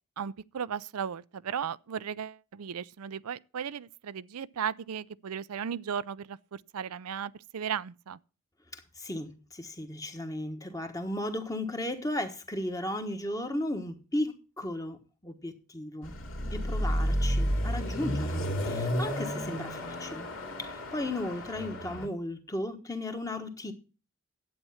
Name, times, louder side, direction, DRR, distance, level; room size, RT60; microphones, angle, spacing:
voice 1, 0.2-8.2, right 7 dB, 85° right, 0.5 m, -36 dB
voice 2, 8.7-15.0 15.2-16.1 16.5-20.3 20.6-23.7, left 1 dB, 15° left, 1.2 m, -35 dB
Car passing by / Accelerating revving vroom, 16.0-22.1, equal, 65° left, 2.3 m, -31 dB
11.0 x 8.5 x 5.6 m
head